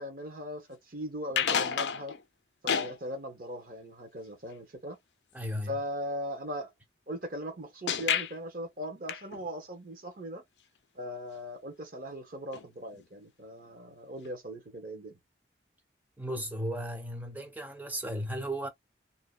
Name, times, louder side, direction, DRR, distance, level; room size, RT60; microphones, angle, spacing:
voice 1, 0.0-2.2 2.6-5.0 5.7-6.7 7.1-10.4 10.9-15.2, equal, 50° right, 0.9 m, -39 dB
sound 1, 1.3-2.2 2.7-3.0 7.9-8.3 9.1-9.5 12.5-12.7 12.9-13.0 14.2-14.3, left 7 dB, 75° left, 0.4 m, -30 dB
voice 2, 5.3-5.8 16.2-18.7, equal, 10° right, 0.6 m, -35 dB
2.7 x 2.1 x 2.3 m
head